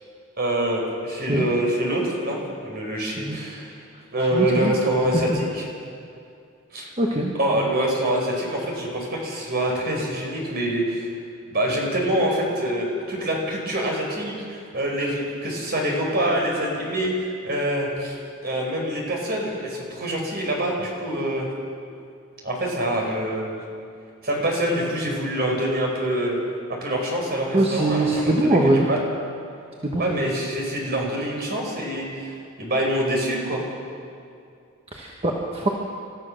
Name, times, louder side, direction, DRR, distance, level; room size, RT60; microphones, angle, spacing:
voice 1, 0.4-3.8 4.1-5.6 6.7-6.9 7.3-11.1 11.5-18.2 18.4-21.5 22.4-23.6 24.2-26.4 26.7-29.0 30.0-33.6, right 1 dB, 45° right, -1 dB, 4.8 m, -25 dB
voice 2, 3.0-3.4 4.3-4.7 5.1-5.4 7.0-7.6 27.5-28.9 29.8-30.2 34.9-35.7, right 1 dB, 25° right, -1 dB, 1.5 m, -22 dB
28.5 x 14.0 x 6.6 m, 2.4 s
head